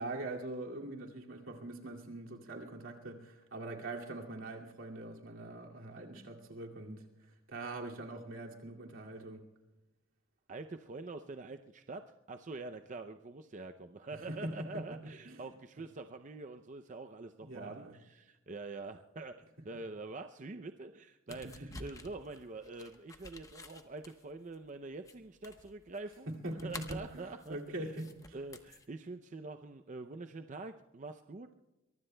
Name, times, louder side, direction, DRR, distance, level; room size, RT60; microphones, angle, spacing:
voice 1, 0.0-9.4 14.3-14.8 15.2-15.5 17.4-18.0 21.3-21.8 26.3-28.4, right 2 dB, 75° right, 0 dB, 2.3 m, -43 dB
voice 2, 10.5-19.4 19.6-26.3 26.6-27.9 28.3-31.5, right 3 dB, 35° right, 7 dB, 0.5 m, -45 dB
sound 1, 21.3-28.8, left 2 dB, 15° left, 1.0 m, -51 dB
23.0 x 22.5 x 2.2 m, 1.0 s
head